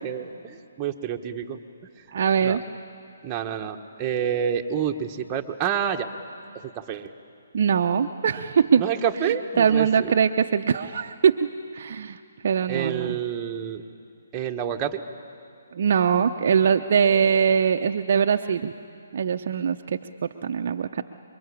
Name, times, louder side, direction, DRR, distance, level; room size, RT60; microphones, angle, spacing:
voice 1, 0.0-1.6 2.0-2.1 2.4-2.6 3.2-6.1 6.5-7.1 8.8-10.1 12.7-13.8 14.3-15.0, right 8 dB, 20° right, 2 dB, 1.4 m, -28 dB
voice 2, 2.1-2.6 7.5-8.8 9.6-11.5 11.7-12.2 12.4-13.2 15.7-18.7 19.1-21.0, right 7 dB, 55° right, 5 dB, 0.8 m, -22 dB
28.0 x 23.0 x 8.7 m, 2.4 s
figure-of-eight pair, 140°, 0 cm